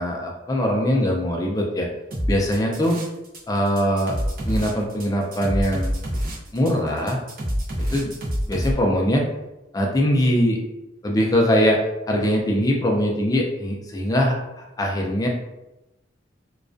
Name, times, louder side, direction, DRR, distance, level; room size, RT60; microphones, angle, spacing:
voice 1, 0.0-1.9 2.3-3.0 3.5-4.2 4.5-6.0 6.5-7.2 7.9-8.1 8.5-9.2 9.7-10.6 11.0-11.8 12.1-15.3, equal, 20° left, 0 dB, 0.4 m, -22 dB
sound 1, 2.1-3.4 3.7-8.7, equal, 50° right, 0.6 m, -26 dB
2.3 x 2.1 x 2.5 m, 0.96 s
head